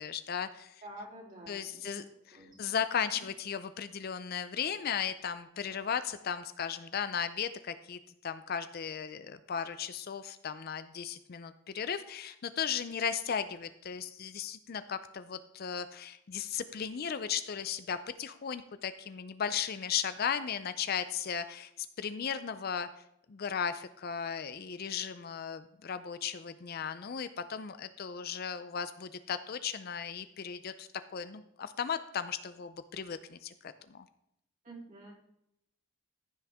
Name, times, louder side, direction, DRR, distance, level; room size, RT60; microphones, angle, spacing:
voice 1, 0.0-0.7 1.5-2.0 2.6-21.7 22.0-22.9 23.3-34.0, left 7 dB, 45° left, 12 dB, 0.4 m, -36 dB
voice 2, 0.8-2.0 2.3-2.8 3.1-3.2 34.6-35.1, right 1 dB, 35° right, -4 dB, 3.3 m, -48 dB
15.0 x 6.3 x 3.5 m, 0.78 s
head